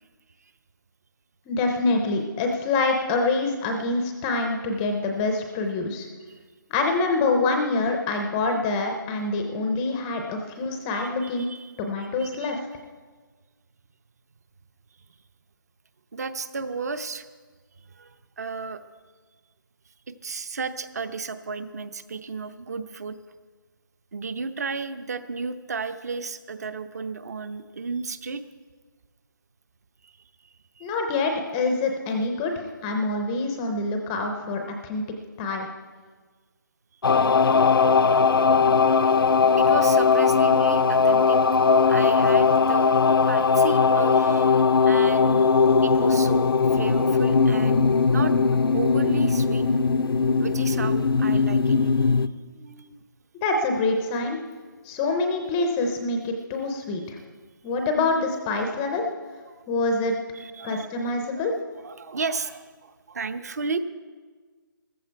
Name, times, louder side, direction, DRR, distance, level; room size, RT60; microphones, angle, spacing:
voice 1, 1.5-6.1 6.7-11.5 11.8-12.6 30.8-35.0 35.4-35.7 53.4-54.4 54.8-57.2 57.6-59.0 59.7-60.1 60.6-61.5, left 3 dB, 10° left, 4 dB, 0.5 m, -26 dB
voice 2, 10.9-11.7 12.2-12.6 16.1-17.2 18.0-18.8 20.2-23.2 24.1-28.4 30.0-30.1 30.8-30.9 39.0-39.2 39.6-42.9 43.3-45.5 45.8-48.3 48.7-49.6 50.4-53.0 60.4-61.5 61.8-63.8, right 4 dB, 45° right, 12 dB, 0.8 m, -33 dB
sound 1, 37.0-52.3, left 5 dB, 85° left, 0.6 m, -19 dB
14.5 x 14.0 x 4.6 m, 1.4 s
hypercardioid pair, 170°, 12 cm